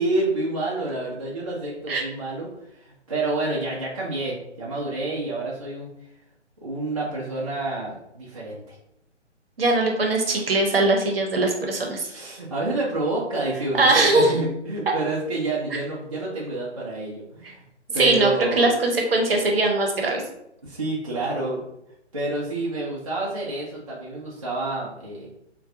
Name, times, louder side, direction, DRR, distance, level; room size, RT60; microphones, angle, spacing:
voice 1, 0.0-5.9 6.6-8.8 12.0-17.6 17.9-18.7 20.6-21.6 22.1-25.3, right 2 dB, 30° right, -6 dB, 0.4 m, -28 dB
voice 2, 9.6-12.1 13.7-14.3 17.9-18.3 18.6-20.2, right 2 dB, 55° right, 1 dB, 0.8 m, -20 dB
3.7 x 2.2 x 2.5 m, 0.81 s
figure-of-eight pair, 140°, 36 cm